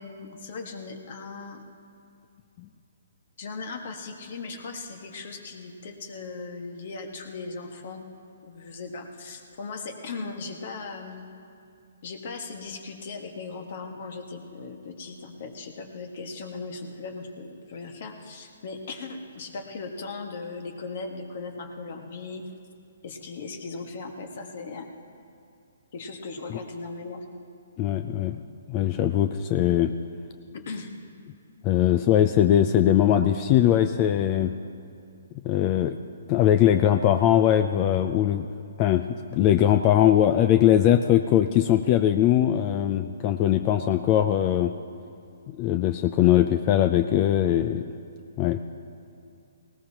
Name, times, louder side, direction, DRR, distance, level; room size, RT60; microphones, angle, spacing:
voice 1, 0.0-1.6 3.4-8.1 8.4-11.3 12.0-22.5 23.0-24.9 25.9-27.3 30.5-30.9, left 4 dB, 55° left, 4 dB, 1.7 m, -38 dB
voice 2, 27.8-28.4 28.7-29.9 31.6-34.5 35.4-36.0 36.3-38.5 38.8-44.7 45.5-47.8 48.4-48.6, left 11 dB, 30° left, 8 dB, 0.4 m, -21 dB
19.0 x 18.5 x 3.0 m, 2.5 s
hypercardioid pair, 150°, 0 cm